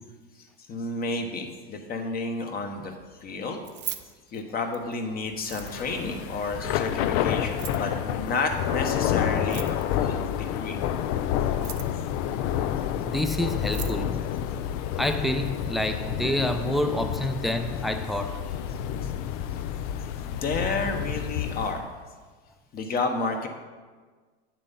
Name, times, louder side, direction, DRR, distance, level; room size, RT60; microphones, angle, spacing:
voice 1, 0.4-2.9 3.2-3.6 4.3-10.8 19.0-19.1 20.2-21.8 22.7-23.5, left 3 dB, 30° left, 4 dB, 1.2 m, -31 dB
Keys jangling, 3.5-4.9 5.4-6.1 7.4-7.9 9.4-10.1 11.4-12.1 13.2-13.3 13.6-14.0, right 12 dB, 40° right, 0.7 m, -39 dB
Thunder / Rain, 5.5-21.8, left 9 dB, 50° left, 0.6 m, -29 dB
voice 2, 13.0-14.2 15.0-18.4, left 1 dB, ahead, 6 dB, 0.6 m, -28 dB
9.1 x 7.5 x 4.1 m, 1.4 s
hypercardioid pair, 110°, 29 cm